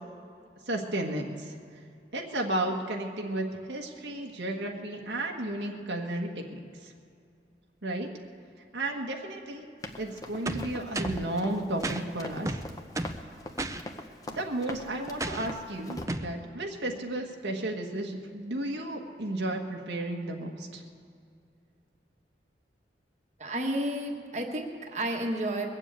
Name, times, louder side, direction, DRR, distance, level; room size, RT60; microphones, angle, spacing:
voice 1, 0.7-1.5 2.1-6.9 7.8-8.1 8.7-9.7 10.0-12.6 14.3-20.8, right 1 dB, 85° right, 1 dB, 1.5 m, -33 dB
Run, 9.8-16.1, left 1 dB, 20° left, 0.9 m, -41 dB
sound 1, 10.5-11.3 11.8-12.0 12.5-13.2 13.6-13.8 15.2-15.5 16.1-16.3, right 2 dB, 20° right, 0.5 m, -33 dB
voice 2, 23.4-25.8, right 1 dB, 40° right, 1 dB, 1.3 m, -31 dB
22.0 x 7.3 x 8.3 m, 2.4 s
head